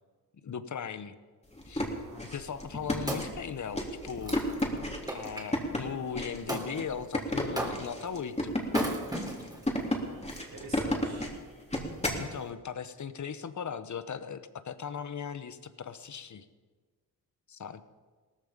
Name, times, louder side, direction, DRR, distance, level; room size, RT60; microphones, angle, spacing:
voice 1, 0.4-1.2 1.7-1.8 2.3-4.4 5.1-8.5 12.2-16.5 17.5-17.8, left 7 dB, 45° left, 13 dB, 1.0 m, -38 dB
sound 1, 1.5-12.3, left 1 dB, 15° left, 3.2 m, -33 dB
voice 2, 1.9-2.6 9.6-11.3, right 3 dB, 60° right, 0 dB, 4.5 m, -49 dB
Wood, 2.5-5.5 6.5-6.7 7.5-8.1 8.6-9.6 10.3-10.4, right 1 dB, 10° right, 3.5 m, -36 dB
17.5 x 14.5 x 5.2 m, 1.4 s
cardioid pair, 75°, 39 cm